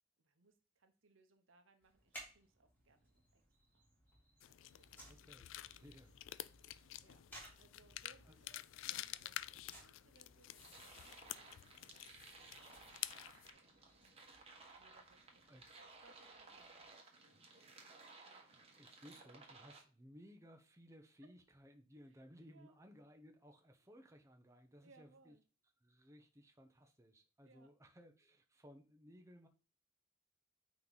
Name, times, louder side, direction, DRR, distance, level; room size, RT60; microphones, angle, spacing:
voice 1, 0.2-3.4 3.7-3.9 4.5-5.2 6.3-6.4 7.0-7.3 7.6-13.2 13.5-17.4 18.2-18.5 22.4-22.8 24.8-25.4 27.4-27.7, right 3 dB, 85° right, 7 dB, 1.0 m, -70 dB
sound 1, 1.8-16.9, right 1 dB, 10° left, 2.9 m, -62 dB
sound 2, 4.4-13.5, left 14 dB, 70° left, 0.3 m, -50 dB
voice 2, 5.0-6.2 6.6-6.9 8.3-8.4 15.5-15.7 17.3-17.4 18.4-25.3 25.8-29.5, equal, 15° right, 4 dB, 0.8 m, -61 dB
sound 3, 10.6-19.8, right 3 dB, 30° right, 1.3 m, -59 dB
9.1 x 3.1 x 4.0 m, 0.35 s
head